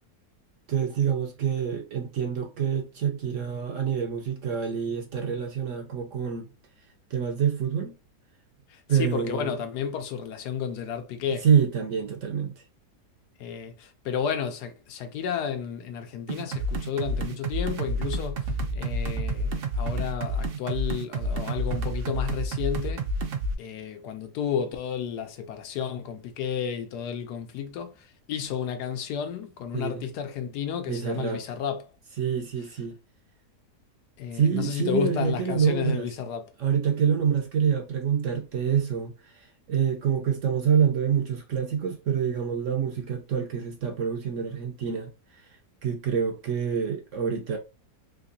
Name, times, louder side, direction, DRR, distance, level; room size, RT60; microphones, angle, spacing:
voice 1, 0.7-6.5 7.1-7.9 8.9-9.6 11.4-12.6 29.7-30.0 30.9-31.4 32.2-33.0 34.3-36.1 36.6-45.1 45.8-47.6, right 7 dB, 65° right, 0.8 m, -26 dB
voice 2, 8.7-11.5 13.4-23.1 23.6-31.8 34.2-36.5, left 7 dB, 85° left, 1.2 m, -32 dB
sound 1, 16.3-23.5, right 1 dB, 80° right, 0.5 m, -29 dB
3.5 x 2.8 x 2.6 m
omnidirectional pair, 1.7 m